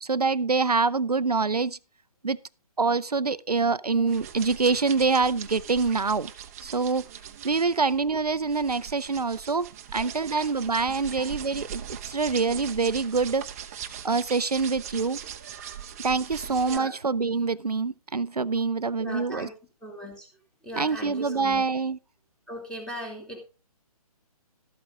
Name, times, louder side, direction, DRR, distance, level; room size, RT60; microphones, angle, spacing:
voice 1, 0.0-1.8 2.2-2.4 2.8-6.3 6.6-7.0 7.4-9.7 9.9-13.4 14.0-15.2 16.0-19.5 20.8-22.0, right 4 dB, 85° right, 0.5 m, -25 dB
sound 1, 4.1-16.8, right 9 dB, 25° right, 0.8 m, -41 dB
voice 2, 19.0-19.5 19.8-20.3 20.6-21.6 22.5-23.4, equal, 5° left, 2.5 m, -38 dB
13.0 x 8.5 x 3.8 m
figure-of-eight pair, 140°, 20 cm